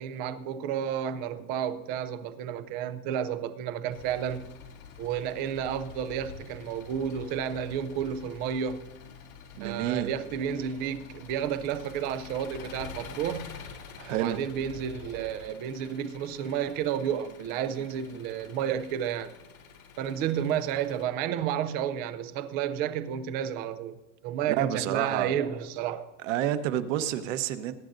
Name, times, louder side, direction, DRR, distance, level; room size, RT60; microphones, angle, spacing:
voice 1, 0.0-4.4 5.0-8.8 9.6-13.5 14.1-19.3 20.0-23.9 24.2-26.1, right 9 dB, 25° right, 0.3 m, -31 dB
Engine, 3.9-21.0, left 6 dB, 75° left, 3.9 m, -47 dB
voice 2, 9.5-10.1 14.0-14.4 24.5-25.3 26.2-27.8, right 11 dB, 60° right, 1.1 m, -29 dB
21.0 x 10.0 x 2.6 m
supercardioid pair, 155°, 44 cm